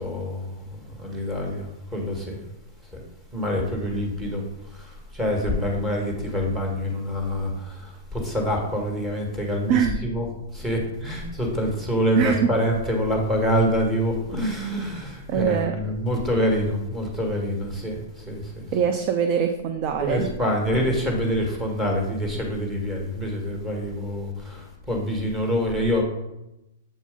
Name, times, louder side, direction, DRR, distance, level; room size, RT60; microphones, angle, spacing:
voice 1, 0.0-2.4 2.9-3.0 3.3-4.4 4.7-10.3 10.5-18.7 20.0-26.0, equal, 10° right, 0 dB, 1.4 m, -26 dB
voice 2, 12.2-12.5 15.3-15.8 18.7-20.3, right 7 dB, 40° right, 6 dB, 0.5 m, -23 dB
7.4 x 2.6 x 5.1 m, 0.91 s
hypercardioid pair, 145°, 0 cm